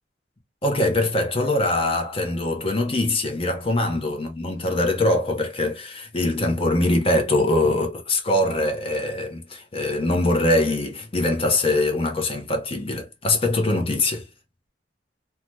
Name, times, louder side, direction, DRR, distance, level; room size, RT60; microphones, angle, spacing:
voice 1, 0.6-14.2, left 2 dB, 30° left, 0.8 m, -23 dB
2.8 x 2.2 x 3.1 m
head